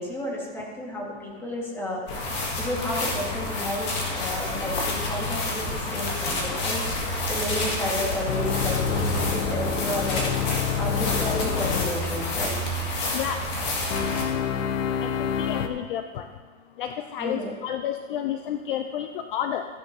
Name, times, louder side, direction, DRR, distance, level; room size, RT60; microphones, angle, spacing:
voice 1, 0.0-2.0 2.6-10.2 10.8-12.5 17.2-17.5, equal, 5° left, -3 dB, 1.6 m, -32 dB
sound 1, 2.1-14.2, left 2 dB, 30° left, 1.8 m, -29 dB
sound 2, 8.3-12.0 13.9-15.7, left 7 dB, 90° left, 1.0 m, -27 dB
voice 2, 15.0-16.3 16.8-19.7, left 10 dB, 45° left, 8 dB, 0.4 m, -30 dB
15.0 x 10.5 x 2.7 m, 1.5 s
supercardioid pair, 170°, 37 cm